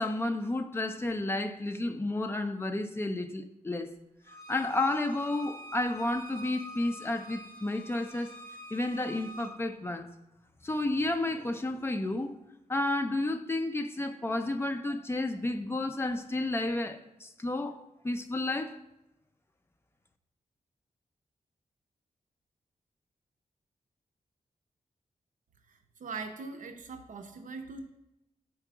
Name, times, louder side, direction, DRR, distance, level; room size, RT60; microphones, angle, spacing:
voice 1, 0.0-3.9 4.5-8.4 8.7-10.1 10.6-12.4 12.7-18.8, left 2 dB, 15° left, 0.5 m, -31 dB
Bowed string instrument, 4.3-9.5, equal, 35° left, 1.4 m, -47 dB
voice 2, 25.7-27.9, right 4 dB, 70° right, 0.6 m, -41 dB
4.7 x 4.6 x 5.9 m
wide cardioid pair, 130°, 14 cm